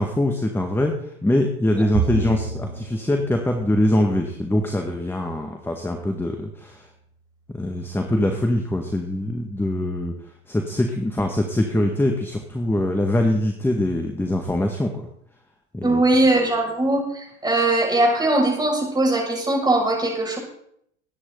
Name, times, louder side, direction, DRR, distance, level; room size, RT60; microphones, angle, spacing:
voice 1, 0.0-6.9 7.5-10.1 10.5-15.1 15.7-16.0, left 1 dB, 5° left, 4 dB, 1.8 m, -23 dB
Bowed string instrument, 1.9-5.4, right 5 dB, 70° right, 5.6 m, -31 dB
voice 2, 15.8-20.4, right 2 dB, 10° right, -1 dB, 6.5 m, -20 dB
21.5 x 9.9 x 4.0 m, 0.70 s
hypercardioid pair, 90°, 36 cm